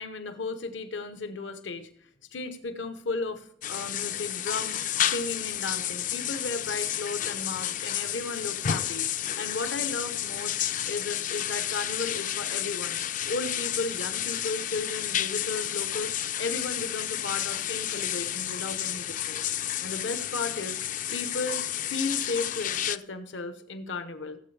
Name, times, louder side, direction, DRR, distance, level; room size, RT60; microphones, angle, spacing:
voice 1, 0.0-1.9 2.3-10.6 10.9-13.0 13.3-16.1 16.4-19.4 19.8-20.8 21.1-21.6 21.9-24.4, left 3 dB, 85° left, 9 dB, 1.0 m, -34 dB
sound 1, 3.6-23.0, left 11 dB, 45° left, 0.4 m, -31 dB
16.5 x 7.8 x 3.3 m, 0.70 s
head